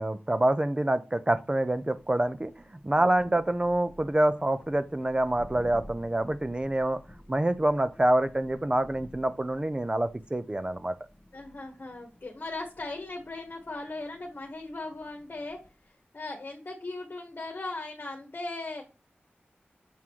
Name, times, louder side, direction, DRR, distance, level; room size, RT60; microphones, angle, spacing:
voice 1, 0.0-7.0 7.3-11.0, right 1 dB, 25° right, 0.6 m, -26 dB
Thunder, 1.6-15.9, equal, 5° left, 1.1 m, -52 dB
voice 2, 11.3-15.6 16.1-18.8, left 2 dB, 50° left, 1.5 m, -38 dB
7.3 x 3.7 x 4.6 m
wide cardioid pair, 85°, 4 cm